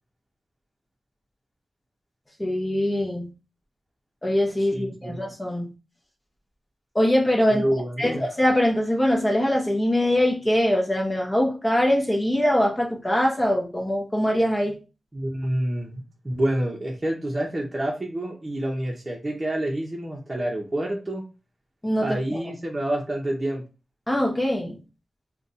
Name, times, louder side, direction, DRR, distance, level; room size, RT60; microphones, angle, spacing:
voice 1, 2.4-3.3 4.2-5.7 6.9-7.7 8.0-14.8 21.8-22.4 24.1-24.8, left 1 dB, 25° left, -1 dB, 0.8 m, -22 dB
voice 2, 4.7-5.2 7.5-8.3 15.1-21.2 22.0-23.6, right 1 dB, 30° right, -1 dB, 0.7 m, -28 dB
2.5 x 2.2 x 4.0 m, 0.32 s
cardioid pair, 45°, 0 cm